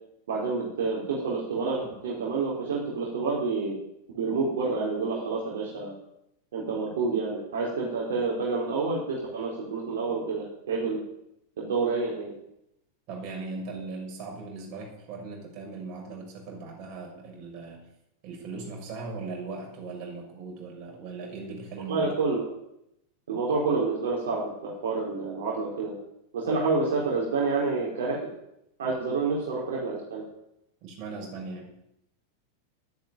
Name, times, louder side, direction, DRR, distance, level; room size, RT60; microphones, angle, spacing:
voice 1, 0.3-3.7 4.1-5.9 6.5-11.0 11.6-12.3 21.9-22.5 23.3-25.9 26.3-28.2 28.8-30.2, right 4 dB, 60° right, -4 dB, 4.1 m, -28 dB
voice 2, 13.1-17.9 18.2-22.1 30.8-31.7, right 3 dB, 40° right, 0 dB, 6.5 m, -39 dB
12.5 x 10.5 x 8.9 m, 0.81 s
figure-of-eight pair, 90°, 0 cm